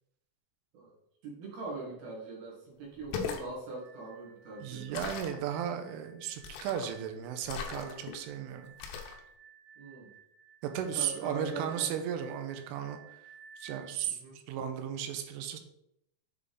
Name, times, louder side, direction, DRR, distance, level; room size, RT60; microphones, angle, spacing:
voice 1, 1.2-5.0 9.8-10.1 10.9-11.9 14.2-14.4, right 3 dB, 65° right, -4 dB, 2.7 m, -42 dB
sound 1, 3.0-3.5 4.9-5.4 6.4-6.9 7.5-8.2 8.8-9.2, left 6 dB, 90° left, 3.4 m, -38 dB
sound 2, 3.7-13.9, right 8 dB, 65° left, 1.4 m, -56 dB
voice 2, 4.6-8.7 10.6-13.0 13.6-14.2 14.5-15.6, right 9 dB, 85° right, 7 dB, 3.1 m, -35 dB
8.1 x 3.6 x 3.8 m, 0.78 s
omnidirectional pair, 5.7 m